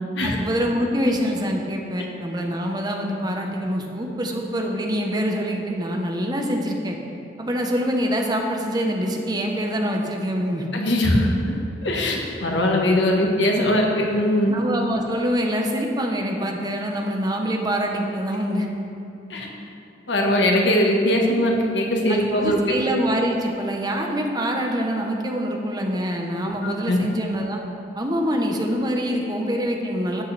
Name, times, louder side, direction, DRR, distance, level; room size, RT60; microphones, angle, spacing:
voice 1, 0.2-7.0 7.4-10.6 14.5-18.7 22.1-27.6 28.0-30.2, equal, 25° right, 1 dB, 1.0 m, -25 dB
voice 2, 10.7-11.3 11.8-14.5 19.3-19.5 20.1-22.6 26.6-27.0, left 1 dB, 90° left, 0 dB, 1.4 m, -20 dB
12.5 x 8.7 x 3.4 m, 2.7 s
head